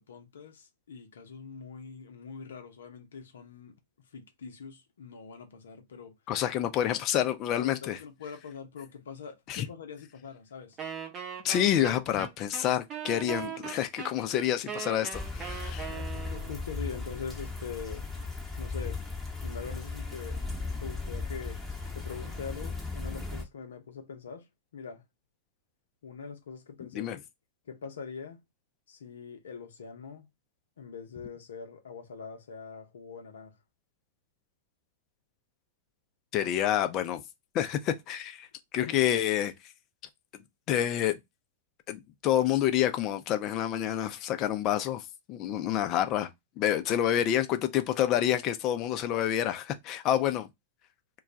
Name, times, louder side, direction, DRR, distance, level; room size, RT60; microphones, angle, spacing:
voice 1, 0.0-6.2 7.6-10.8 15.9-18.1 18.6-19.0 19.4-20.4 20.8-21.6 21.9-24.5 24.7-25.0 26.0-27.2 27.7-28.4 28.9-30.3 30.8-33.6 38.8-39.0, left 6 dB, 75° left, 0.7 m, -43 dB
voice 2, 6.3-8.0 9.5-9.6 11.4-15.9 26.9-27.2 36.3-37.2 37.5-38.5 38.7-39.5 40.7-41.2 41.9-46.3 46.6-50.5, left 11 dB, 40° left, 0.5 m, -28 dB
Wind instrument woodwind instrument, 10.8-16.6, right 8 dB, 30° right, 0.7 m, -39 dB
sound 1, 15.1-23.4, left 3 dB, ahead, 0.9 m, -37 dB
2.3 x 2.3 x 3.8 m
hypercardioid pair, 105°, 0 cm